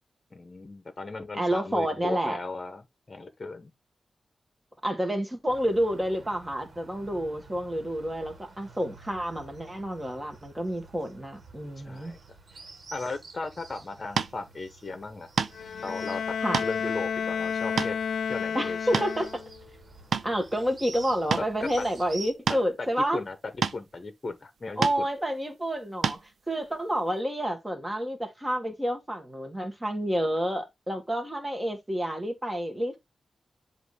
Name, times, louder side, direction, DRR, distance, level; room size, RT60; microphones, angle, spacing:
voice 1, 0.3-2.8 3.1-3.7 11.8-12.2 12.9-15.3 15.8-16.2 16.6-18.0 18.3-19.1 21.4-21.7 23.1-23.3 23.7-24.9, left 3 dB, 35° left, 1.0 m, -36 dB
voice 2, 1.3-2.4 4.8-12.2 16.4-16.6 18.5-19.3 20.2-23.2 24.8-26.2 26.5-33.0, equal, 15° right, 1.8 m, -29 dB
sound 1, 5.5-22.3, right 3 dB, 60° right, 1.5 m, -50 dB
sound 2, 14.2-14.3 15.4-15.7 16.3-16.7 17.2-17.3 17.8-18.0 18.7-19.3 19.8-20.3 21.3-21.5 22.5-22.7 23.6-23.8 24.8-25.0 26.0-26.2, right 6 dB, 85° right, 0.6 m, -28 dB
Bowed string instrument, 15.5-19.6, left 7 dB, 85° left, 0.4 m, -31 dB
7.8 x 2.7 x 4.9 m
wide cardioid pair, 105°, 0 cm